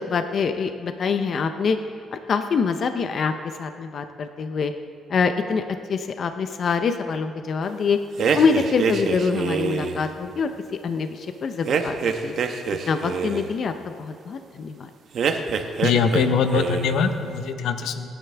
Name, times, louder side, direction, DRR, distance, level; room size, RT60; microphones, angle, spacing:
voice 1, 0.0-1.8 2.3-3.3 3.6-4.7 5.1-5.6 5.9-8.0 8.3-10.5 10.8-12.3 12.9-14.9, left 5 dB, 55° left, 8 dB, 0.7 m, -25 dB
sound 1, 8.2-10.0 11.7-13.5 15.1-16.3 16.5-17.0, right 6 dB, 65° right, 1.1 m, -25 dB
voice 2, 15.8-18.1, left 5 dB, 80° left, 8 dB, 1.0 m, -22 dB
24.5 x 10.0 x 3.5 m, 2.4 s
cardioid pair, 90°, 0 cm